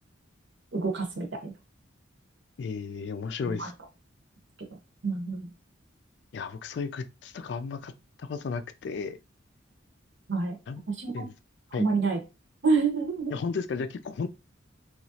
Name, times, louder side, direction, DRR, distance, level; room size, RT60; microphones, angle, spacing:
voice 1, 0.7-1.5 3.4-3.7 5.0-5.5 10.3-10.6 10.9-11.3 11.8-12.2 12.6-13.3, right 4 dB, 65° right, 0.8 m, -27 dB
voice 2, 2.6-3.7 6.3-7.9 8.2-9.2 10.7-10.8 11.1-11.3 11.7-11.9 13.3-14.3, left 5 dB, 60° left, 0.3 m, -34 dB
3.0 x 2.3 x 2.7 m
head